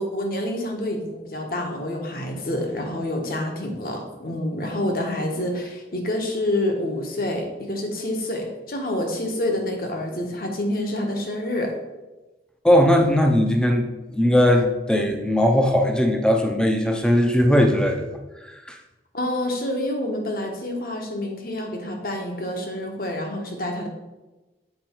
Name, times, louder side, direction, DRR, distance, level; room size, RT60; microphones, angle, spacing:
voice 1, 0.0-11.7 19.1-23.9, left 1 dB, 55° left, 2 dB, 1.2 m, -27 dB
voice 2, 12.6-18.0 18.7-18.8, equal, 5° left, 3 dB, 0.6 m, -19 dB
7.8 x 4.5 x 4.5 m, 1.1 s
head